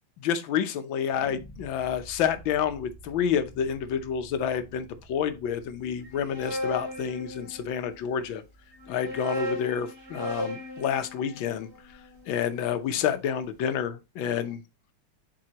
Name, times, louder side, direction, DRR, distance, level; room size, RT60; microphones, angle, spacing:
voice 1, 0.2-8.4 8.9-11.7 12.3-14.6, left 8 dB, 90° left, 1.6 m, -29 dB
sound 1, 1.1-10.1, right 2 dB, 15° left, 0.4 m, -52 dB
sound 2, 6.0-7.9 8.7-12.9, left 1 dB, 35° right, 3.6 m, -37 dB
7.5 x 4.8 x 2.9 m
omnidirectional pair, 2.1 m